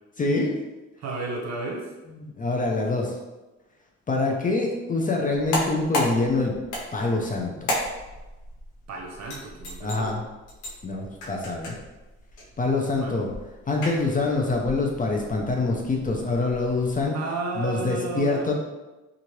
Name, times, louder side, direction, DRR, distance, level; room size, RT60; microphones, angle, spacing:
voice 1, 0.2-0.6 2.1-3.2 4.1-6.5 6.9-7.7 9.8-10.2 10.8-11.8 12.6-13.3 13.7-17.1 17.6-18.5, left 3 dB, 30° left, 0 dB, 0.5 m, -25 dB
voice 2, 1.0-1.9 8.9-10.2 12.8-13.2 17.1-18.5, right 3 dB, 60° right, -1 dB, 0.9 m, -33 dB
sound 1, 5.3-17.1, left 1 dB, 85° left, 0.9 m, -35 dB
2.7 x 2.5 x 3.0 m, 1.1 s
cardioid pair, 90°, 30 cm